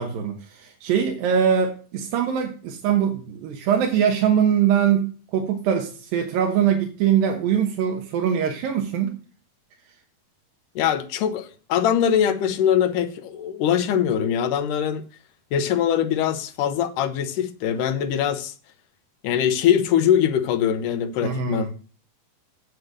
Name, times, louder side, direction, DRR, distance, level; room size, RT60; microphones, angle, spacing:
voice 1, 0.0-9.2 21.2-21.7, right 8 dB, 75° right, 2.8 m, -22 dB
voice 2, 10.8-15.0 15.5-18.5 19.2-21.7, left 9 dB, 70° left, 2.2 m, -22 dB
7.9 x 7.8 x 6.6 m
omnidirectional pair, 4.3 m